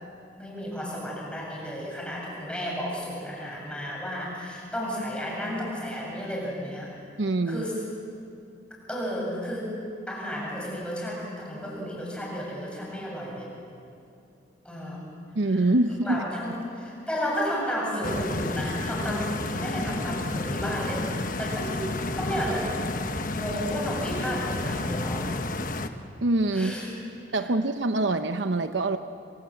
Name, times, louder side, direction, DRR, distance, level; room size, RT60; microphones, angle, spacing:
voice 1, 0.3-6.9 7.5-7.8 8.9-9.8 10.1-13.5 14.6-15.0 15.4-21.1 21.4-21.8 22.1-22.8 23.3-25.3 26.5-27.0 27.3-27.5, equal, 5° left, -4 dB, 7.9 m, -32 dB
voice 2, 7.2-7.6 15.3-16.2 26.2-26.7 27.3-29.0, right 2 dB, 80° right, 9 dB, 0.9 m, -24 dB
Stream, 18.0-25.9, left 2 dB, 45° left, 1.2 m, -31 dB
26.5 x 26.0 x 7.9 m, 2.6 s
head